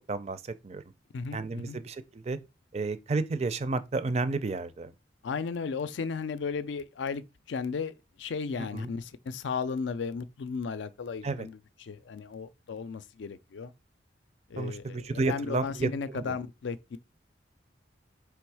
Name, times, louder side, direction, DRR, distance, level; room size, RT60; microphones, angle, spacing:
voice 1, 0.1-0.8 1.3-2.4 2.7-4.9 8.6-8.9 11.2-11.5 14.6-16.3, right 3 dB, 35° right, 0.4 m, -31 dB
voice 2, 1.1-1.8 5.2-7.2 7.5-13.7 14.5-17.0, left 5 dB, 85° left, 0.4 m, -35 dB
3.5 x 3.0 x 4.7 m
head